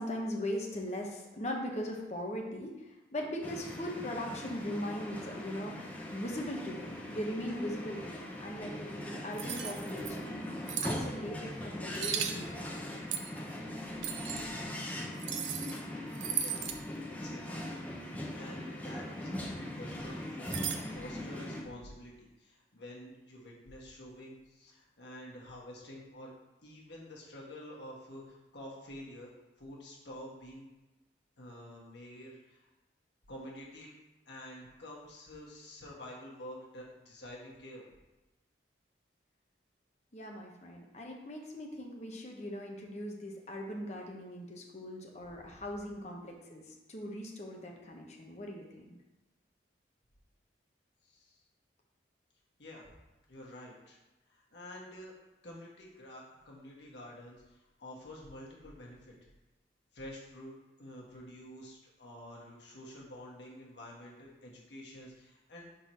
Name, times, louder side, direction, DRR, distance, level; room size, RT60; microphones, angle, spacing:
voice 1, 0.0-10.4 10.8-13.1 40.1-46.6 46.9-49.0, equal, 35° left, 0 dB, 0.9 m, -40 dB
sound 1, 3.4-21.6, left 1 dB, 10° left, 0.6 m, -40 dB
sound 2, 9.4-10.1 10.7-11.0 11.9-12.4 13.1-13.4 14.0-14.4 15.2-15.8 16.1-16.8 20.4-20.8, right 9 dB, 75° right, 0.5 m, -36 dB
voice 2, 16.3-16.6 16.9-17.7 18.3-20.6 20.9-26.3 26.6-29.3 29.6-30.7 31.4-32.7 33.3-33.9 34.3-37.9 44.7-44.8 51.0-51.4 52.6-52.9 53.3-54.0 54.3-55.1 55.4-59.1 59.9-65.7, left 1 dB, 65° left, -3 dB, 1.4 m, -49 dB
4.6 x 3.8 x 5.6 m, 1.1 s
head